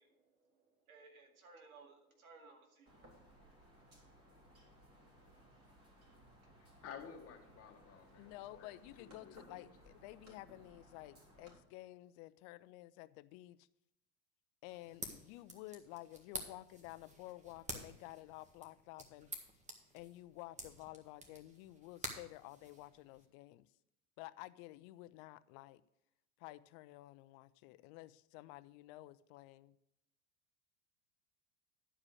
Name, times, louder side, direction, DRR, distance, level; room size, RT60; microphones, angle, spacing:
voice 1, 0.0-3.1 3.9-5.8 6.1-6.2 6.4-6.6, right 4 dB, 90° right, 2.1 m, -63 dB
sound 1, 2.9-11.6, equal, 35° right, 3.6 m, -63 dB
voice 2, 6.6-9.7, left 7 dB, 35° left, 2.0 m, -54 dB
voice 3, 8.0-13.7 14.6-19.3 19.9-23.7 24.2-25.8 26.4-29.7, left 17 dB, 50° left, 0.6 m, -52 dB
sound 2, 14.7-23.2, right 1 dB, 15° right, 1.6 m, -50 dB
11.0 x 4.9 x 6.3 m
hypercardioid pair, 95°, 41 cm